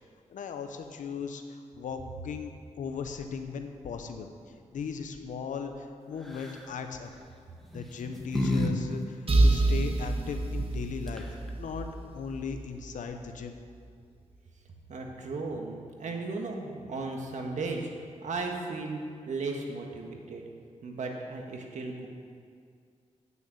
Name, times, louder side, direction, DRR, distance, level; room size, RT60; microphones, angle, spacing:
voice 1, 0.3-2.5 2.8-4.3 4.7-7.1 7.7-11.3 11.6-13.6, left 6 dB, 85° left, 6 dB, 0.9 m, -37 dB
sound 1, 6.3-6.7 7.6-8.7 9.0-9.1 10.8-10.9 11.1-11.5, left 1 dB, ahead, 1.5 m, -30 dB
sound 2, 9.3-13.0, right 2 dB, 45° right, 1.3 m, -27 dB
voice 2, 14.9-17.9 18.2-19.0 19.3-20.5 20.8-22.1, right 3 dB, 75° right, 2 dB, 1.6 m, -35 dB
8.9 x 6.9 x 8.3 m, 2.2 s
cardioid pair, 65°, 13 cm